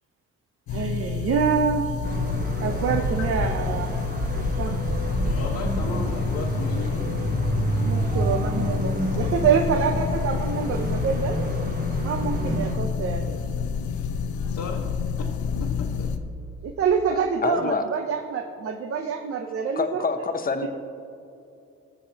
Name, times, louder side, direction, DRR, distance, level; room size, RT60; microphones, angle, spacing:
sound 1, 0.7-16.2, left 6 dB, 80° left, 0.7 m, -29 dB
voice 1, 0.7-2.0 2.6-3.9 4.3-4.8 7.9-11.4 12.0-13.4 16.6-20.0, right 6 dB, 50° right, 5 dB, 0.7 m, -26 dB
sound 2, 2.0-12.7, right 2 dB, 30° right, 1.3 m, -29 dB
voice 2, 3.9-4.2 4.5-4.8 5.2-7.0 14.4-14.8 15.2-16.1, left 4 dB, 60° left, -3 dB, 1.3 m, -36 dB
voice 3, 17.1-17.8 19.8-20.7, left 4 dB, 30° left, 8 dB, 0.8 m, -27 dB
20.0 x 6.9 x 2.9 m, 2.6 s
cardioid pair, 90°, 30 cm